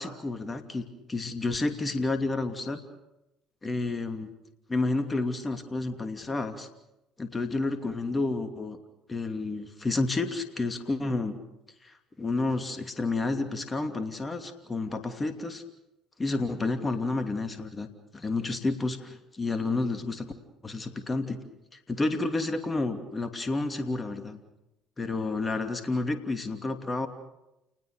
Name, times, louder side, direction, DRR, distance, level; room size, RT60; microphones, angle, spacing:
voice 1, 0.0-2.8 3.6-4.3 4.7-6.7 7.2-8.8 9.1-11.4 11.8-15.6 16.2-17.9 18.1-20.3 20.6-21.4 21.7-24.4 25.0-27.1, left 3 dB, 25° left, 7 dB, 2.8 m, -30 dB
29.0 x 19.5 x 6.6 m, 0.91 s
hypercardioid pair, 60°, 0 cm